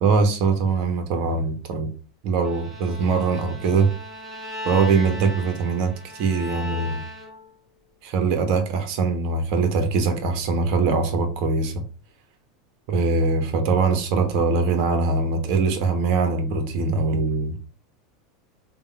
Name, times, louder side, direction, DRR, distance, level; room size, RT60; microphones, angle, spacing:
voice 1, 0.0-1.9 2.2-3.9 4.6-7.0 8.0-11.8 12.9-17.6, right 4 dB, 60° right, 1.1 m, -22 dB
Bowed string instrument, 2.4-7.6, left 1 dB, 5° right, 2.0 m, -37 dB
3.6 x 2.5 x 4.4 m
supercardioid pair, 115°, 3 cm